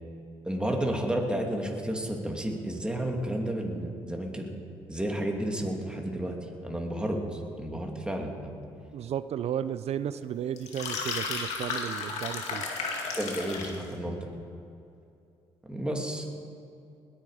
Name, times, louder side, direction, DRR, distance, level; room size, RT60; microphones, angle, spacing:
voice 1, 0.4-4.5 4.9-6.4 6.6-8.5 13.2-14.3 15.7-16.3, right 1 dB, 10° right, 1 dB, 2.7 m, -31 dB
voice 2, 8.9-12.6, right 9 dB, 60° right, 14 dB, 0.6 m, -33 dB
sound 1, 10.6-13.8, left 4 dB, 70° left, 2.4 m, -33 dB
20.0 x 9.5 x 5.0 m, 2.6 s
supercardioid pair, 60°, 12 cm